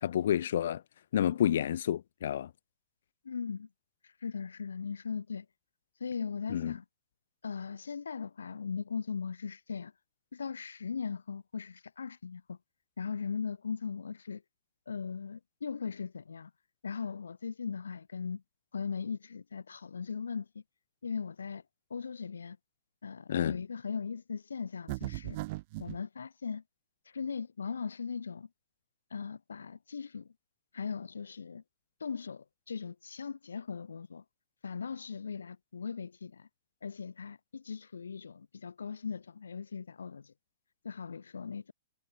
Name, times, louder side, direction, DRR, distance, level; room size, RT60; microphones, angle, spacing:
voice 1, 0.0-0.8 1.1-2.5 6.5-6.8 23.3-23.6, left 10 dB, 65° left, 1.0 m, -29 dB
voice 2, 3.2-3.7 4.0-5.5 6.0-6.8 7.4-9.9 10.3-12.6 13.0-14.4 14.9-16.5 16.8-18.4 18.7-20.6 21.0-21.6 21.9-22.6 23.0-25.4 25.8-26.6 27.0-28.5 29.1-30.3 30.7-31.6 32.0-34.2 34.6-36.5 36.8-40.3 40.8-41.7, left 6 dB, 90° left, 0.8 m, -39 dB
sound 1, 24.9-26.0, right 21 dB, 45° right, 0.8 m, -37 dB
hypercardioid pair, 135°, 0 cm